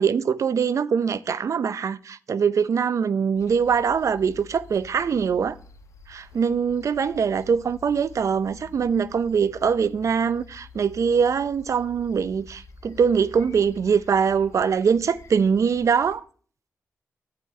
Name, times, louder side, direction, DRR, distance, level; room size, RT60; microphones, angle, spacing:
voice 1, 0.0-5.6 6.1-16.2, right 6 dB, 65° right, 0.6 m, -23 dB
sound 1, 3.4-16.2, left 5 dB, 70° left, 1.4 m, -48 dB
11.5 x 8.3 x 3.2 m
cardioid pair, 55°, 6 cm